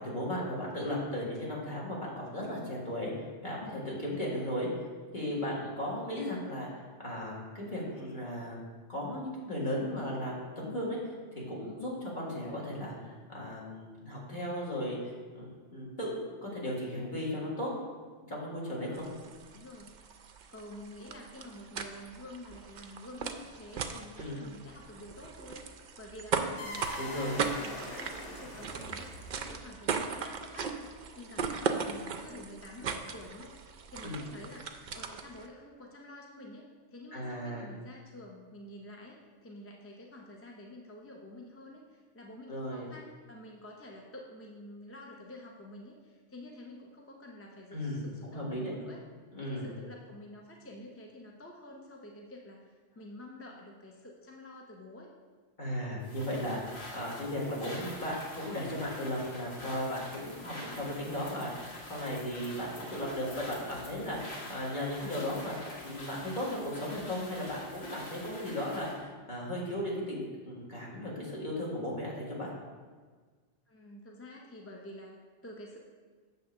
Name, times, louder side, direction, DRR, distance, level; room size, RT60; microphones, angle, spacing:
voice 1, 0.0-3.1 3.4-4.7 5.1-6.7 7.0-8.6 8.9-11.0 11.3-16.1 16.4-17.7 18.3-19.1 24.2-24.4 27.0-27.3 34.0-34.3 37.1-37.7 42.5-42.9 47.7-48.7 49.3-49.7 55.6-65.5 65.8-72.5, left 1 dB, 40° left, -5 dB, 2.0 m, -36 dB
sound 1, 18.9-35.5, right 5 dB, 55° right, 0.5 m, -38 dB
voice 2, 19.5-19.9 20.5-33.6 33.9-34.7 34.9-36.6 36.9-49.0 49.4-55.1 73.7-75.8, left 1 dB, 15° left, 0 dB, 0.5 m, -49 dB
sound 2, 26.6-29.7, left 1 dB, 85° left, 1.6 m, -42 dB
sound 3, 56.0-69.0, left 1 dB, 65° left, 1.7 m, -46 dB
7.7 x 3.5 x 6.5 m, 1.5 s
omnidirectional pair, 1.2 m